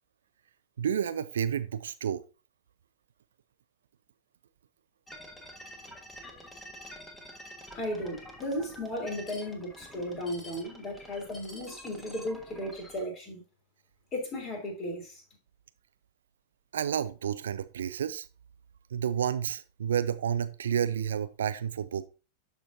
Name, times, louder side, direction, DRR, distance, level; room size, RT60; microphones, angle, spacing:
voice 1, 0.8-2.2 16.7-18.3 18.9-22.1, right 8 dB, 65° right, 0.4 m, -30 dB
sound 1, 5.1-13.0, equal, 10° left, 1.5 m, -48 dB
voice 2, 7.7-13.4 14.1-15.2, left 1 dB, 30° left, 3.2 m, -35 dB
12.5 x 4.4 x 2.6 m
figure-of-eight pair, 90°, 0 cm